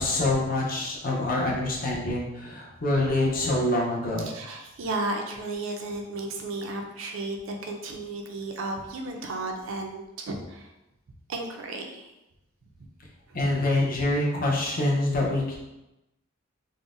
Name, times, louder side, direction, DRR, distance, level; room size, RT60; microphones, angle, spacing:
voice 1, 0.0-4.3 13.3-15.6, left 2 dB, 40° left, -3 dB, 0.6 m, -25 dB
voice 2, 1.2-1.6 4.2-10.7 11.3-12.1 13.3-13.4, right 2 dB, 65° right, 3 dB, 0.4 m, -34 dB
3.7 x 2.0 x 2.5 m, 0.96 s
head